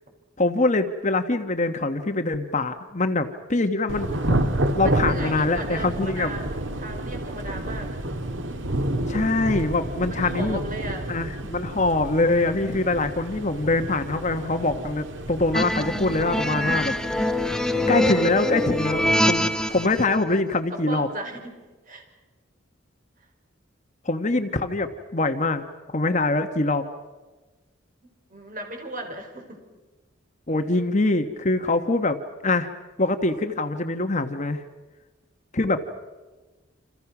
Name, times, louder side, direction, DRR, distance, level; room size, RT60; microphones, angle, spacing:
voice 1, 0.4-4.1 4.7-6.3 9.1-10.6 11.1-16.9 17.2-17.4 17.7-21.1 24.0-25.6 25.9-26.9 30.5-32.7 33.0-34.6 35.5-35.8, left 2 dB, 35° left, 8 dB, 1.2 m, -24 dB
Thunder / Rain, 3.9-20.1, right 1 dB, 70° right, 1.9 m, -30 dB
voice 2, 4.8-6.5 6.8-8.0 10.1-11.2 20.7-21.6 21.9-22.1 23.2-23.3 28.3-29.6, right 2 dB, 40° right, 3 dB, 5.4 m, -36 dB
sound 1, 15.5-20.0, left 1 dB, 5° left, 1.0 m, -24 dB
29.0 x 28.0 x 6.0 m, 1.2 s
head